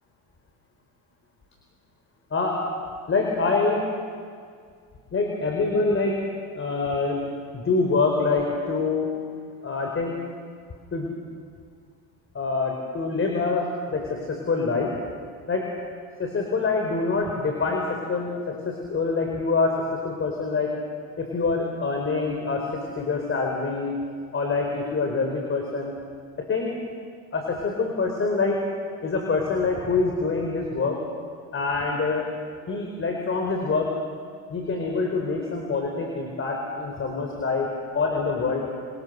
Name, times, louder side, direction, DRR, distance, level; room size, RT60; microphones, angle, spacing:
voice 1, 2.3-2.6 3.1-3.9 5.1-6.2 6.5-7.2 7.5-9.1 9.6-10.2 10.9-11.1 12.3-14.9 15.5-15.7 16.2-20.8 21.2-23.9 24.3-26.0 26.4-26.7 27.3-28.6 29.0-31.0 31.5-32.3 32.7-33.9 34.5-38.6, left 4 dB, 35° left, 1 dB, 4.6 m, -25 dB
28.0 x 23.0 x 6.8 m, 2.1 s
supercardioid pair, 90°, 36 cm